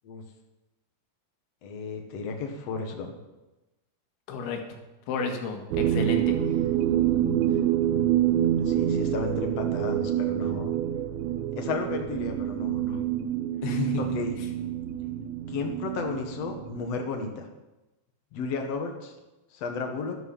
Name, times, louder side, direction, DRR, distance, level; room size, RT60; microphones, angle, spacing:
voice 1, 1.6-3.2 8.4-10.7 11.6-13.0 14.0-14.3 15.5-17.5 18.3-19.1 19.5-20.1, left 4 dB, 55° left, 4 dB, 1.8 m, -33 dB
voice 2, 4.3-4.6 5.1-6.4 13.6-14.0, left 5 dB, 85° left, 3 dB, 4.1 m, -31 dB
sound 1, 5.7-16.9, right 11 dB, 90° right, 3.1 m, -27 dB
12.5 x 12.5 x 5.6 m, 1.0 s
omnidirectional pair, 5.2 m